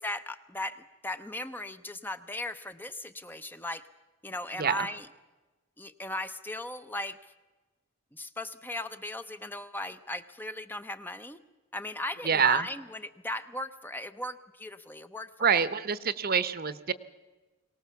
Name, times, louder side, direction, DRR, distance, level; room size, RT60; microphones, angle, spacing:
voice 1, 0.0-3.8 4.2-5.1 5.8-7.2 8.1-11.4 11.7-15.7, left 1 dB, 10° left, 11 dB, 0.6 m, -37 dB
voice 2, 12.2-12.7 15.4-16.9, right 6 dB, 45° right, 15 dB, 0.9 m, -26 dB
23.5 x 19.0 x 7.1 m, 1.2 s
head